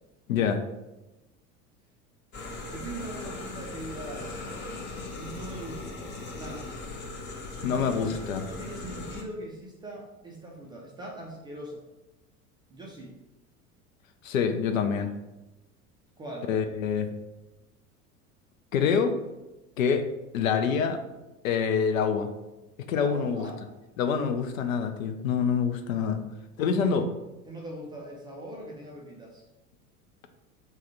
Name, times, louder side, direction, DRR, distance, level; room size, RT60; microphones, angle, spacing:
voice 1, 0.3-0.6 7.6-8.4 14.2-15.1 16.5-17.1 18.7-19.2 19.8-20.1 20.3-21.0 21.4-22.3 22.9-23.5 24.0-26.2 26.6-27.1, left 6 dB, 65° left, 7 dB, 0.6 m, -26 dB
sound 1, 2.3-9.2, left 2 dB, 25° left, 0.6 m, -39 dB
voice 2, 2.7-4.4 5.2-6.0 6.4-6.7 7.6-11.8 12.7-13.2 16.2-16.5 22.9-23.6 26.6-27.0 27.5-29.4, right 1 dB, 10° right, -3 dB, 0.3 m, -41 dB
3.5 x 2.2 x 4.3 m, 1.0 s
figure-of-eight pair, 75°, 44 cm